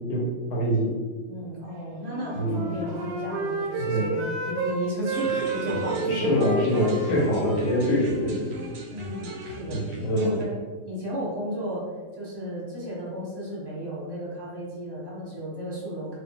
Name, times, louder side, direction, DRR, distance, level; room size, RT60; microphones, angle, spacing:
voice 1, 0.1-0.9 2.3-2.7 3.8-4.1 5.6-8.4 9.7-10.4, equal, 65° left, -3 dB, 1.3 m, -25 dB
voice 2, 1.3-6.4 6.7-6.9 8.1-8.3 8.9-9.8 10.1-16.2, equal, 20° right, -8 dB, 0.7 m, -34 dB
Wind instrument woodwind instrument, 2.0-4.8 5.0-8.7, right 3 dB, 90° right, 1.3 m, -31 dB
sound 1, 5.1-10.4, equal, 70° right, 0.9 m, -38 dB
3.0 x 2.7 x 3.6 m, 1.5 s
omnidirectional pair, 2.0 m